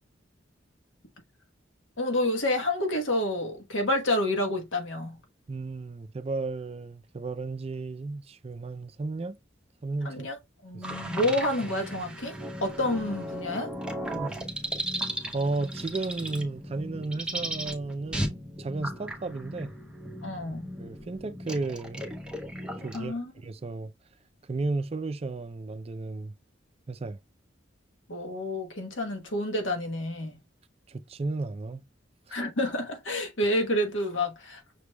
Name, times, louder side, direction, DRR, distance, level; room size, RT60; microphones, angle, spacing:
voice 1, 2.0-5.2 10.0-10.4 10.6-13.7 20.2-20.7 22.9-23.2 28.1-30.4 32.3-34.6, left 1 dB, 85° left, 1.2 m, -29 dB
voice 2, 5.5-9.4 9.8-10.3 10.7-11.7 14.1-14.3 15.3-19.7 20.8-22.0 22.8-23.9 24.5-26.3 26.9-27.2 30.9-31.8 32.3-32.4, right 3 dB, 30° right, 0.4 m, -34 dB
sound 1, 10.8-23.1, right 1 dB, 5° right, 0.7 m, -36 dB
6.0 x 3.2 x 2.2 m
head